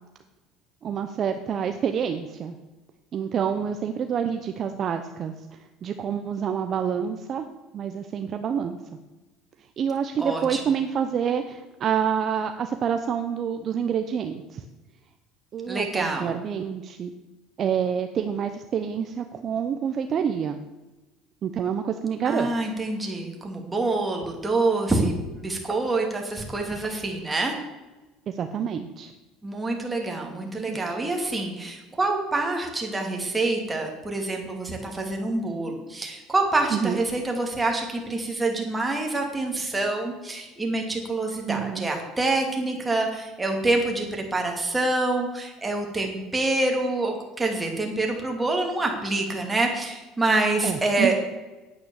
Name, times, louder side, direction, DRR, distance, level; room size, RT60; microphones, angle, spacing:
voice 1, 0.8-2.6 3.1-7.5 7.7-8.8 9.8-14.6 15.5-17.1 17.6-20.6 21.4-22.5 28.3-29.1 30.6-31.0 36.7-37.0 41.5-41.9 50.6-51.1, right 7 dB, 40° right, 7 dB, 0.8 m, -27 dB
voice 2, 10.2-10.6 15.7-16.3 22.3-27.5 29.4-51.1, right 2 dB, 10° right, 1 dB, 2.6 m, -26 dB
9.8 x 8.8 x 7.2 m, 1.1 s
cardioid pair, 125°, 0 cm